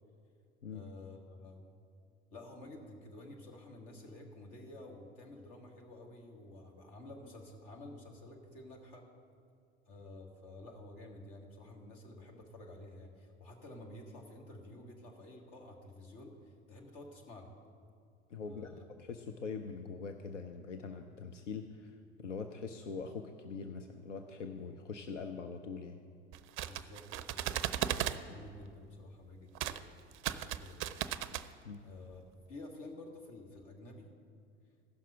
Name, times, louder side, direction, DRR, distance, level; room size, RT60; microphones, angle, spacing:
voice 1, 0.7-1.7 2.3-9.0 9.9-17.5 18.5-18.8 26.7-31.1 31.8-34.1, left 2 dB, 50° left, 2 dB, 2.0 m, -51 dB
voice 2, 18.3-26.0 31.6-31.8, left 5 dB, 90° left, 5 dB, 0.6 m, -43 dB
sound 1, 26.3-28.2 29.6-29.8 30.1-31.5, right 12 dB, 40° right, 0.5 m, -36 dB
15.0 x 6.0 x 5.7 m, 2.3 s
hypercardioid pair, 80°, 36 cm